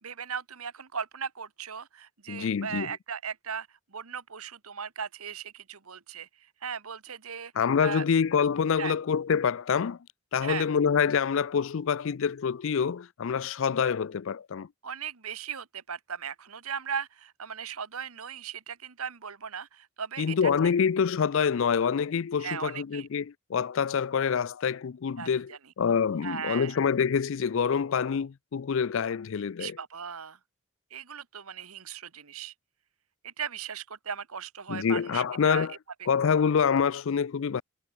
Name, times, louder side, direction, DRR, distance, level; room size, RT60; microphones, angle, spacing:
voice 1, 0.0-6.3 6.6-7.5 7.8-8.0 8.8-8.9 10.4-10.7 14.8-20.3 22.4-23.1 25.2-25.6 26.2-26.8 29.6-30.4 30.9-32.5 33.2-35.7, right 7 dB, 80° right, 1.5 m, -37 dB
voice 2, 2.3-2.9 7.6-10.0 10.3-14.7 20.2-25.5 25.8-29.8 34.7-35.7 36.1-37.6, left 6 dB, 60° left, 0.4 m, -26 dB
head